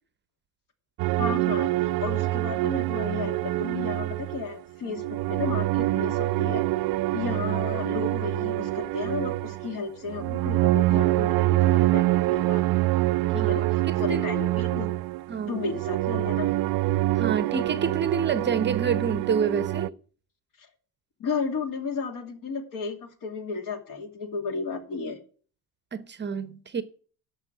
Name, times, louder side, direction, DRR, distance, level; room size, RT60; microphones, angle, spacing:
sound 1, 1.0-4.5 4.9-19.9, right 18 dB, 55° right, 0.5 m, -25 dB
voice 1, 1.2-1.7 2.0-6.6 7.1-12.8 13.3-14.9 15.5-16.5 20.6-20.7 21.2-25.2, left 5 dB, 50° left, 2.6 m, -33 dB
voice 2, 13.4-14.3 15.3-15.6 17.1-19.9 25.9-26.8, right 6 dB, 25° right, 0.8 m, -28 dB
11.5 x 6.7 x 8.1 m
cardioid pair, 120°, 41 cm